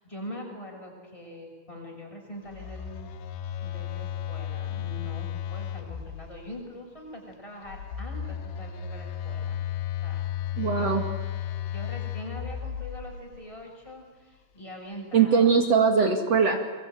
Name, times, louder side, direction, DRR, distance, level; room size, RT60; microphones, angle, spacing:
voice 1, 0.0-3.1 3.6-9.6 10.0-10.2 10.5-11.0 11.4-15.6, left 1 dB, 5° left, 0 dB, 6.2 m, -43 dB
Telephone, 2.5-6.5 7.7-13.4, left 10 dB, 90° left, 3.4 m, -34 dB
voice 2, 10.6-11.0 15.1-16.6, right 6 dB, 45° right, 3 dB, 2.4 m, -21 dB
23.5 x 23.0 x 9.1 m, 1.4 s
omnidirectional pair, 4.9 m